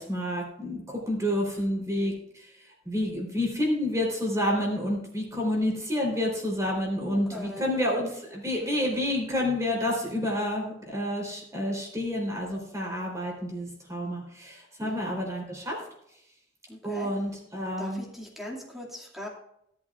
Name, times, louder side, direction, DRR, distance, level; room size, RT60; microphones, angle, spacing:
voice 1, 0.0-2.5 2.8-15.8 16.8-18.0, left 1 dB, 15° right, -1 dB, 3.8 m, -29 dB
voice 2, 7.1-8.1 14.8-15.1 16.7-17.1 17.8-19.3, left 1 dB, ahead, -3 dB, 2.4 m, -40 dB
17.5 x 8.6 x 2.5 m, 0.76 s
head